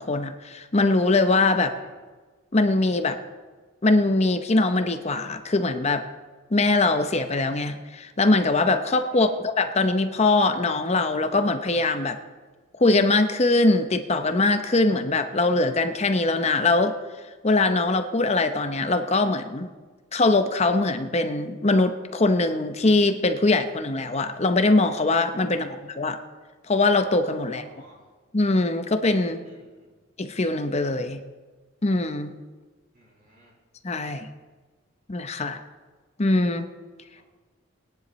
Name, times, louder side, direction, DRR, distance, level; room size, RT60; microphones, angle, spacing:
voice 1, 0.0-1.7 2.5-3.2 3.8-6.0 6.5-12.2 12.8-17.0 17.4-19.7 20.1-26.2 26.7-27.6 28.3-29.4 30.2-31.2 31.8-32.4 33.8-34.3 35.1-35.6 36.2-36.7, left 2 dB, 30° left, 8 dB, 0.7 m, -22 dB
voice 2, 27.5-28.0 29.4-29.9 32.9-33.6 37.1-37.2, equal, 45° right, -4 dB, 4.3 m, -56 dB
20.0 x 10.5 x 3.1 m, 1.3 s
head